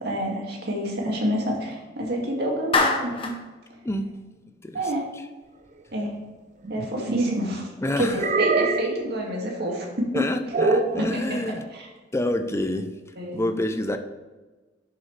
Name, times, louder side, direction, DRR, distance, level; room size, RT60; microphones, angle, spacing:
voice 1, 0.0-3.3 4.7-5.1 5.9-6.2 6.7-7.7 8.0-10.1 11.0-11.9 13.2-13.4, equal, 60° right, -1 dB, 2.2 m, -28 dB
Clapping, 2.7-3.4, left 3 dB, 30° left, 1.0 m, -23 dB
sound 1, 6.6-7.5 8.2-9.0 10.5-11.0, right 3 dB, 40° right, 0.6 m, -23 dB
voice 2, 7.8-8.2 10.1-11.6 12.1-12.9 13.3-14.0, left 1 dB, 15° left, 7 dB, 0.6 m, -27 dB
10.5 x 6.8 x 3.3 m, 1.2 s
head